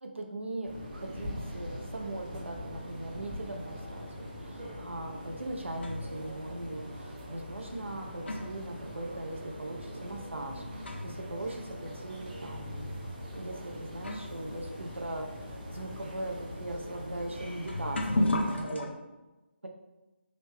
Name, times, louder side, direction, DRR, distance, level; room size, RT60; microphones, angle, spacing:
voice 1, 0.0-13.0 13.3-18.9, right 1 dB, 80° right, 2 dB, 0.8 m, -40 dB
sound 1, 0.6-18.6, equal, 40° right, 1.1 m, -42 dB
sound 2, 5.2-6.2 7.1-7.2 7.9-11.3 11.6-11.7 12.5-12.7 13.5-13.6 14.0-18.9, left 1 dB, 70° left, 0.6 m, -36 dB
4.1 x 3.0 x 3.4 m, 1.1 s
figure-of-eight pair, 150°, 6 cm